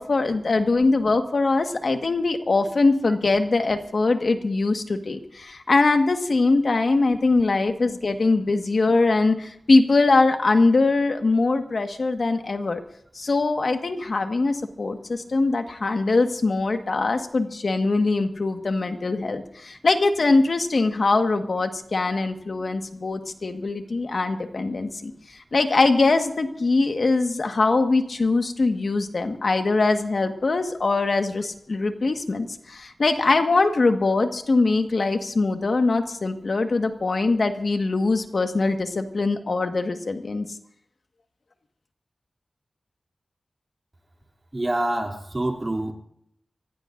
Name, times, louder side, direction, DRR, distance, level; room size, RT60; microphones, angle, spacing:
voice 1, 0.0-12.8 13.1-25.1 25.5-40.5, left 3 dB, 65° left, 6 dB, 1.6 m, -22 dB
voice 2, 44.5-45.9, right 1 dB, 35° right, 2 dB, 2.9 m, -26 dB
25.0 x 16.5 x 2.6 m, 0.72 s
cardioid pair, 55°, 0 cm